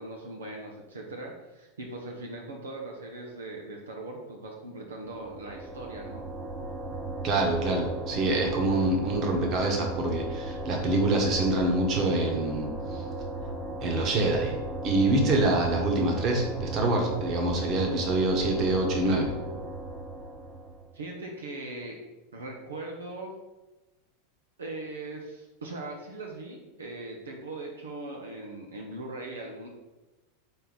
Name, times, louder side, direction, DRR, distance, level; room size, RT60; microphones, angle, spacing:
voice 1, 0.0-6.3 20.9-21.9 22.3-23.3 24.6-29.7, right 2 dB, 85° right, 0 dB, 0.9 m, -40 dB
sound 1, 5.0-20.9, right 1 dB, 15° right, 0.9 m, -36 dB
voice 2, 7.2-13.0 13.8-14.6 14.8-19.3, right 2 dB, 40° right, 1 dB, 1.5 m, -26 dB
5.4 x 4.4 x 4.0 m, 1.1 s
hypercardioid pair, 95°, 0 cm